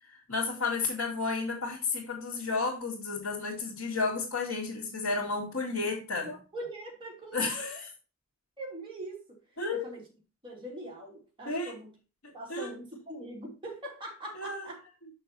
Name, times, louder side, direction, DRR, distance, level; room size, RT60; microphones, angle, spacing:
voice 1, 0.1-6.3 7.3-7.8 9.6-9.9 11.5-11.7 12.5-12.7 14.3-14.7 15.0-15.1, left 3 dB, 80° left, 1.9 m, -32 dB
voice 2, 6.2-7.8 8.6-9.4 9.7-10.0 10.4-11.9 12.3-14.8, right 1 dB, 25° right, 2.8 m, -42 dB
6.5 x 6.0 x 4.0 m
head